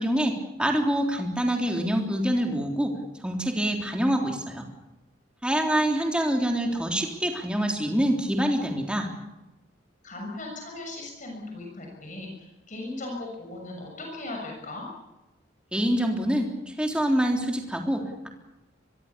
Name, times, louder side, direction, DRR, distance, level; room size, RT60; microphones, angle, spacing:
voice 1, 0.0-2.9 3.2-4.7 5.4-9.1 15.7-16.5 16.8-18.3, equal, 5° right, 2 dB, 3.6 m, -25 dB
voice 2, 10.0-14.8, left 2 dB, 40° left, 0 dB, 6.6 m, -38 dB
25.0 x 22.5 x 7.0 m, 1.0 s
head